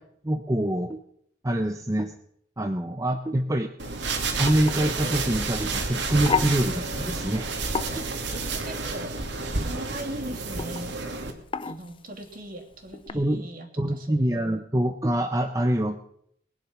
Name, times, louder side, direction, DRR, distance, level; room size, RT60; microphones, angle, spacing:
voice 1, 0.2-1.0 1.4-2.1 2.6-3.7 4.4-7.5 8.0-8.1 13.1-13.5 13.8-16.0, right 1 dB, 15° right, 5 dB, 0.8 m, -25 dB
sound 1, 3.8-13.1, left 5 dB, 25° left, 0.6 m, -35 dB
sound 2, 3.8-11.3, right 3 dB, 65° right, 2.4 m, -30 dB
voice 2, 8.3-9.1 9.5-11.0 11.6-14.6, right 1 dB, 50° right, 2 dB, 2.9 m, -40 dB
20.5 x 10.5 x 6.2 m, 0.70 s
head